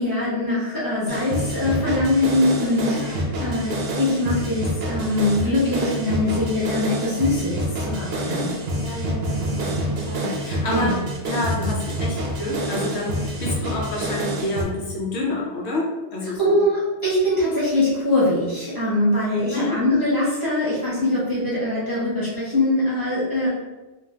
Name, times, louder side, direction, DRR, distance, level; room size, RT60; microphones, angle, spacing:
voice 1, 0.0-8.5 10.7-11.0 16.4-23.5, left 1 dB, 25° right, -9 dB, 0.6 m, -22 dB
sound 1, 1.1-14.6, right 1 dB, 65° right, 0.7 m, -27 dB
voice 2, 2.9-3.7 8.3-10.9 11.3-16.6 19.5-19.8, left 2 dB, 65° left, -2 dB, 0.8 m, -29 dB
2.4 x 2.3 x 3.2 m, 1.1 s
omnidirectional pair, 1.2 m